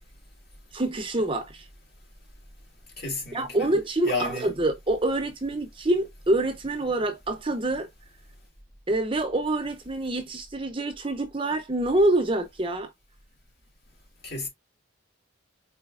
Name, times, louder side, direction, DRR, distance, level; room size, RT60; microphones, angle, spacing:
voice 1, 0.7-1.6 3.3-7.9 8.9-12.9, right 2 dB, 25° right, 0.6 m, -26 dB
voice 2, 3.0-3.7 4.0-4.5 14.2-14.5, left 2 dB, 50° left, 2.3 m, -31 dB
4.1 x 3.8 x 2.3 m
head